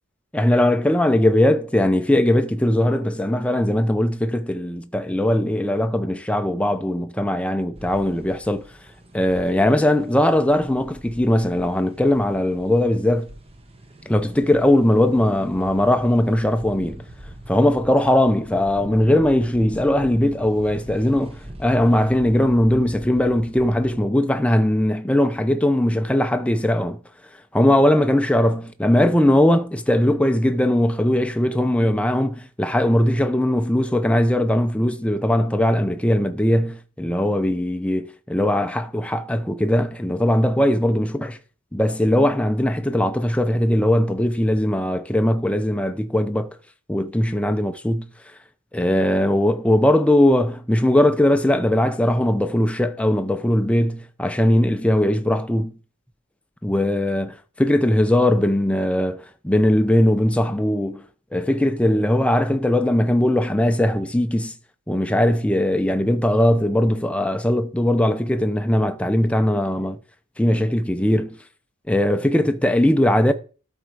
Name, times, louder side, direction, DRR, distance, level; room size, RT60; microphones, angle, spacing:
voice 1, 0.3-8.6 9.1-13.3 14.1-17.0 17.5-27.0 27.5-41.3 41.7-46.5 46.9-48.1 48.7-55.7 56.6-61.0 61.3-64.5 64.9-70.0 70.4-71.4 71.9-73.3, left 1 dB, 5° left, 0.6 m, -20 dB
sound 1, 7.7-24.1, right 1 dB, 30° right, 1.1 m, -42 dB
12.0 x 4.5 x 4.8 m
head